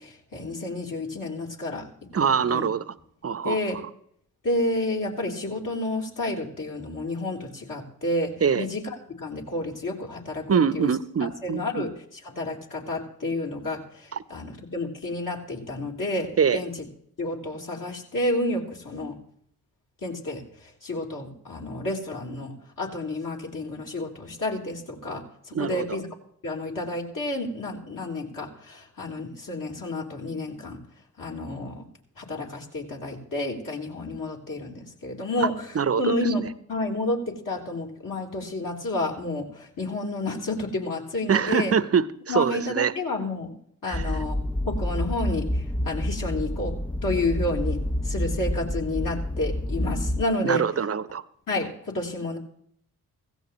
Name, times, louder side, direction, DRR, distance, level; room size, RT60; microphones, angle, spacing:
voice 1, 0.0-1.9 2.1-2.7 3.4-3.8 4.4-10.9 11.4-11.9 12.2-16.7 17.2-19.2 20.0-26.1 26.4-30.8 31.2-31.9 32.2-41.7 42.3-43.5 43.8-46.8 47.0-50.6 51.5-52.4, left 2 dB, 50° left, -1 dB, 3.6 m, -30 dB
voice 2, 2.1-2.9 3.2-3.6 8.4-8.7 10.5-11.9 16.4-16.6 25.5-26.0 35.4-35.5 35.7-36.1 41.3-42.9 43.9-44.0 50.4-51.2, right 6 dB, 35° right, 16 dB, 0.9 m, -24 dB
sound 1, 43.9-50.2, left 1 dB, 5° left, 0.4 m, -28 dB
16.0 x 15.5 x 3.1 m, 0.66 s
hypercardioid pair, 45°, 41 cm